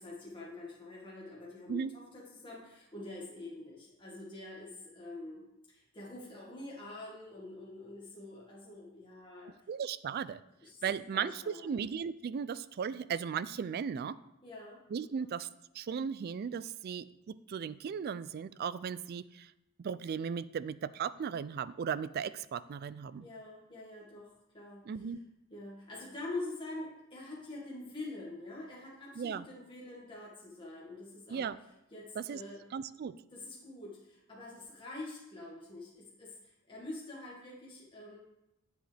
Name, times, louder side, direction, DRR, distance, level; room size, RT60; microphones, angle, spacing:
voice 1, 0.0-9.5 10.6-10.8 11.1-11.8 14.4-15.3 23.2-24.8 25.5-31.5 31.9-32.6 33.3-38.2, left 2 dB, 25° left, -6 dB, 1.9 m, -46 dB
voice 2, 9.7-10.4 10.8-14.2 14.9-15.5 15.7-19.5 19.8-23.3 24.9-25.2 29.2-29.5 31.3-31.6 32.2-32.4 32.7-33.2, right 7 dB, 50° right, 17 dB, 0.3 m, -36 dB
9.9 x 7.6 x 3.4 m, 0.88 s
head